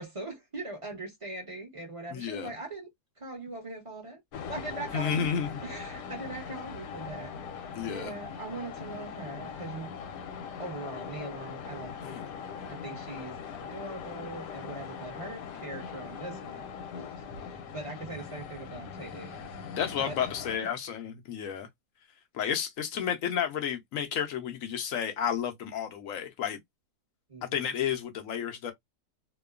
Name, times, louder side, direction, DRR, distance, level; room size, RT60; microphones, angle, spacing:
voice 1, 0.0-2.9 3.2-4.2 4.5-5.3 5.6-7.3 7.6-9.9 10.6-12.2 12.6-16.6 16.9-19.4 20.0-20.2 27.3-27.7, right 2 dB, 25° right, 0.8 m, -41 dB
voice 2, 2.1-2.5 4.9-5.5 7.7-8.1 12.0-12.3 19.8-21.7 22.3-26.6 27.4-28.7, left 8 dB, 65° left, 0.9 m, -31 dB
sound 1, 4.3-20.6, left 6 dB, 85° left, 1.2 m, -41 dB
2.8 x 2.2 x 2.3 m
omnidirectional pair, 1.8 m